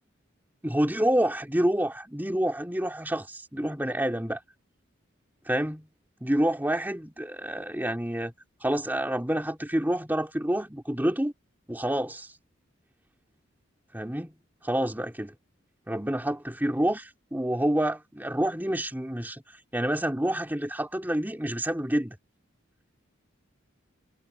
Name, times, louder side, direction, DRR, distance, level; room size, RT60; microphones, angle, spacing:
voice 1, 0.6-4.4 5.5-5.9 6.2-8.3 8.6-11.3 11.7-12.3 13.9-14.3 14.6-15.3 15.9-19.4 19.7-22.2, right 1 dB, 10° right, 2.8 m, -28 dB
head